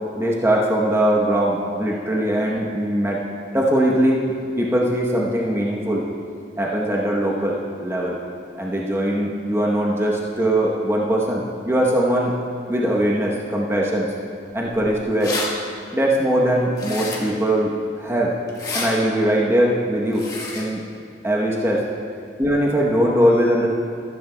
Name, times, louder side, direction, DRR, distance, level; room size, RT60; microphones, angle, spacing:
voice 1, 0.2-3.2 3.5-6.0 6.6-8.2 8.6-12.3 12.7-14.1 14.5-15.4 15.9-18.3 18.7-20.3 20.5-20.9 21.2-21.8 22.4-23.7, right 1 dB, 15° right, -3 dB, 0.9 m, -21 dB
sound 1, 14.7-14.8 15.0-15.5 16.8-17.4 18.5-18.9 20.1-20.6, left 3 dB, 20° left, 1.4 m, -29 dB
14.0 x 13.0 x 2.2 m, 2.6 s
head